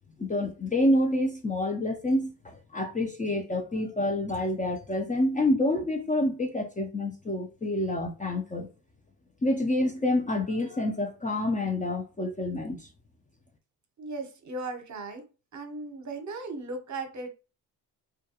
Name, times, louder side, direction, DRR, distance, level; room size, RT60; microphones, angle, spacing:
voice 1, 0.2-8.7 9.4-12.9, left 1 dB, 20° left, 0.5 m, -28 dB
voice 2, 14.0-15.2 15.5-17.3, right 3 dB, 45° right, 0.8 m, -37 dB
2.3 x 2.2 x 2.8 m
supercardioid pair, 60°, 42 cm